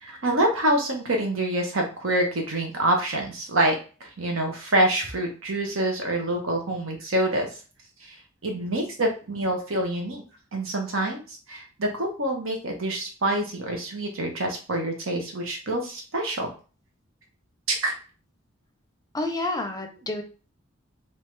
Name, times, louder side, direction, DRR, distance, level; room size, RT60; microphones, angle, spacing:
voice 1, 0.0-7.5 8.4-10.2 10.5-16.5 17.7-17.9, right 1 dB, 90° right, 2 dB, 1.1 m, -26 dB
voice 2, 19.1-20.2, left 2 dB, 20° left, 6 dB, 0.5 m, -29 dB
3.5 x 2.8 x 3.2 m, 0.36 s
head